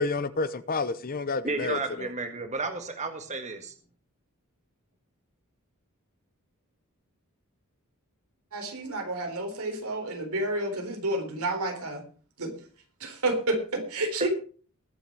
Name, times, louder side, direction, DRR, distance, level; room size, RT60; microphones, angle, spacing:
voice 1, 0.0-2.1, left 3 dB, 40° left, 14 dB, 0.8 m, -29 dB
voice 2, 1.4-3.7 14.2-14.3, right 3 dB, 30° right, 6 dB, 1.7 m, -32 dB
voice 3, 8.5-12.0 12.4-12.5 13.0-14.3, right 2 dB, 85° right, 3 dB, 4.3 m, -30 dB
20.5 x 7.1 x 4.8 m, 0.41 s
head